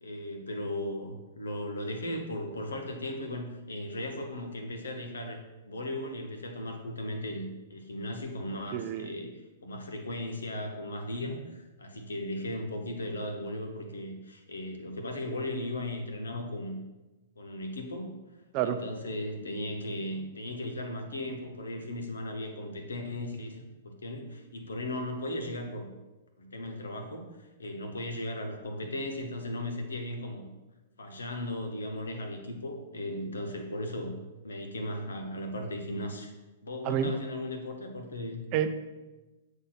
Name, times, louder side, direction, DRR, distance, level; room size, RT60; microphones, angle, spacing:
voice 1, 0.0-9.3 9.6-16.8 17.4-18.2 18.6-25.9 26.4-30.5 31.0-34.2 34.4-36.3 36.6-38.4, left 1 dB, 90° left, 4 dB, 1.1 m, -37 dB
voice 2, 8.7-9.1 18.5-18.8 36.8-37.1 38.5-38.7, right 9 dB, 40° right, 9 dB, 0.6 m, -28 dB
8.1 x 2.7 x 5.8 m, 1.1 s
hypercardioid pair, 125°, 0 cm